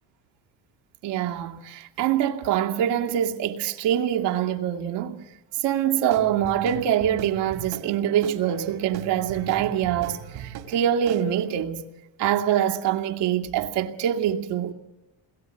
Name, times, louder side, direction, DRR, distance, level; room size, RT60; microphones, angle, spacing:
voice 1, 1.0-5.2 5.5-11.8 12.2-14.7, right 10 dB, 85° right, 2.6 m, -24 dB
Guitar / Drum, 6.1-11.6, right 8 dB, 70° right, 2.7 m, -40 dB
29.0 x 21.5 x 9.1 m
cardioid pair, 145°, 40 cm